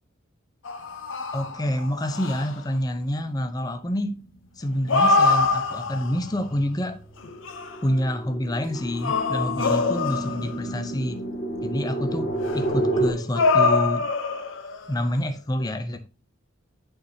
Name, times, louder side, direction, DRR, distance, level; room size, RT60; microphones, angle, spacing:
sound 1, 0.6-2.6 4.6-6.3 7.2-7.8 8.8-10.7 12.4-14.9, left 3 dB, 70° left, 0.7 m, -24 dB
voice 1, 1.3-4.2 4.6-7.0 7.8-11.2 11.6-14.1 14.9-16.1, equal, 20° left, 0.5 m, -27 dB
sound 2, 4.3-13.1, right 1 dB, 40° left, 1.5 m, -31 dB
11.5 x 4.1 x 2.7 m
head